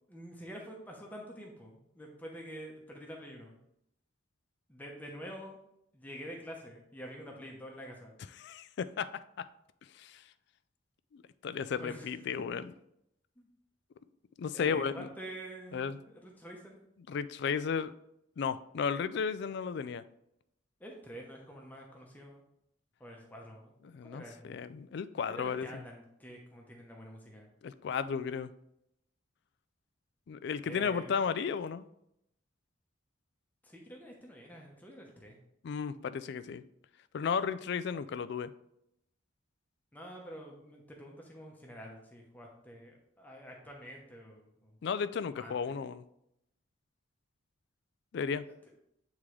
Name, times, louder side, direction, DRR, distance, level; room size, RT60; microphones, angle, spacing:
voice 1, 0.1-3.6 4.7-5.6 5.9-8.2 11.7-12.1 13.4-13.5 14.5-16.8 20.8-22.4 23.0-23.7 24.0-24.7 25.3-27.5 30.6-31.1 33.6-35.4 39.9-44.7 45.4-45.8, equal, 10° left, -1 dB, 0.8 m, -47 dB
voice 2, 8.4-9.1 9.4-9.5 9.9-10.2 11.1-12.6 14.4-15.1 15.7-16.0 17.1-17.9 18.4-20.0 23.9-25.8 27.6-28.5 30.3-31.8 35.6-36.6 37.1-38.5 44.8-46.0 48.1-48.4, left 6 dB, 55° left, 14 dB, 0.3 m, -34 dB
8.4 x 3.6 x 3.2 m, 0.78 s
head